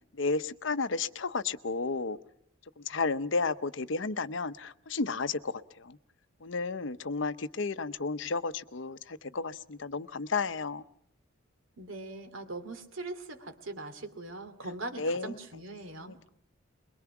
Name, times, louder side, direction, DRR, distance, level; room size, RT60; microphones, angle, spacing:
voice 1, 0.2-2.2 2.9-6.0 6.4-10.8 15.0-15.3 16.0-16.3, left 4 dB, 65° left, 14 dB, 0.8 m, -32 dB
voice 2, 11.8-16.3, right 2 dB, 75° right, 8 dB, 2.5 m, -41 dB
22.5 x 22.5 x 6.0 m, 0.74 s
head